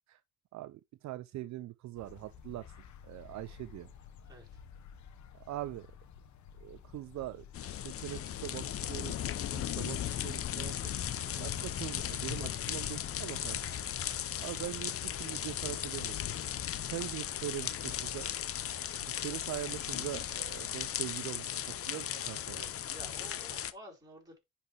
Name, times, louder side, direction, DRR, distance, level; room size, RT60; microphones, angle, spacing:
voice 1, 0.5-2.7 3.0-3.9 5.5-5.9 6.6-9.2 9.5-10.9 11.4-13.8 14.4-16.2 16.8-18.3 19.1-22.6, right 15 dB, 65° right, 0.5 m, -42 dB
sound 1, 2.0-20.7, left 7 dB, 70° left, 1.1 m, -53 dB
voice 2, 4.3-4.6 22.1-22.2 22.5-24.4, right 1 dB, 15° right, 4.2 m, -52 dB
sound 2, 7.5-23.7, left 10 dB, 50° left, 0.6 m, -37 dB
10.0 x 4.3 x 3.2 m
cardioid pair, 90°, 30 cm